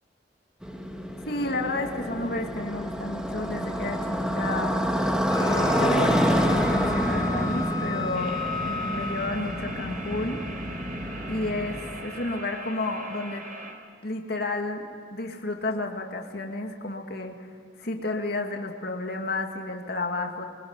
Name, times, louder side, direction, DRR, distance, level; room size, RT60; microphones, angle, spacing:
Motorcycle, 0.6-12.0, equal, 5° right, 1.9 m, -28 dB
voice 1, 1.3-4.8 5.4-10.5 11.3-13.4 14.0-17.5 17.8-20.5, left 2 dB, 55° left, 2 dB, 2.3 m, -31 dB
Wind instrument woodwind instrument, 5.3-9.5, left 4 dB, 25° left, 2.7 m, -34 dB
sound 1, 8.1-13.7, right 2 dB, 45° right, 4.3 m, -40 dB
24.0 x 22.0 x 9.7 m, 2.2 s
head